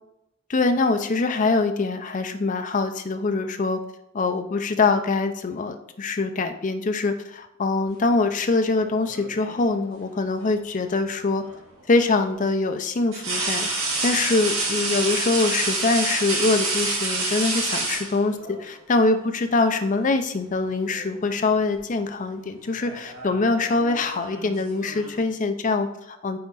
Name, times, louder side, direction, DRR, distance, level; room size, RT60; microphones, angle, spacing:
voice 1, 0.5-3.8 4.1-11.4 11.9-26.4, left 3 dB, 40° left, 7 dB, 0.5 m, -24 dB
sound 1, 8.8-9.7 11.4-11.6 13.1-18.6 19.8-20.0 20.4-21.1 21.4-21.8 22.6-25.2, right 2 dB, 75° right, 1.9 m, -28 dB
5.7 x 4.1 x 4.0 m, 0.81 s
head